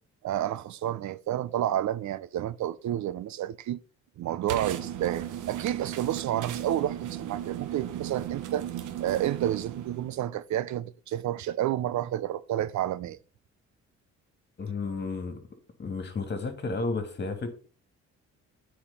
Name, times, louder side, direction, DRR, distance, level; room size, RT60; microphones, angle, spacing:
voice 1, 0.2-3.8 4.2-8.7 9.0-13.2, right 12 dB, 70° right, 0.7 m, -30 dB
sound 1, 4.5-10.2, right 11 dB, 85° right, 1.2 m, -36 dB
voice 2, 14.6-15.4 15.8-17.5, left 3 dB, 35° left, 2.7 m, -32 dB
8.8 x 5.0 x 7.1 m
cardioid pair, 90°, 30 cm